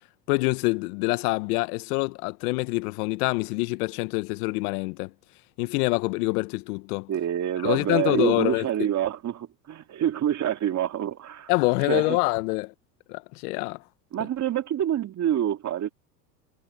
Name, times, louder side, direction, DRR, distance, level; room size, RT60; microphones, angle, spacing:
voice 1, 0.3-5.1 5.6-7.1 7.6-8.6 11.5-12.7 13.1-13.8, left 24 dB, 65° left, 1.3 m, -26 dB
voice 2, 7.1-11.5 11.8-12.2 14.1-15.9, right 11 dB, 35° right, 2.5 m, -27 dB
hypercardioid pair, 105°, 49 cm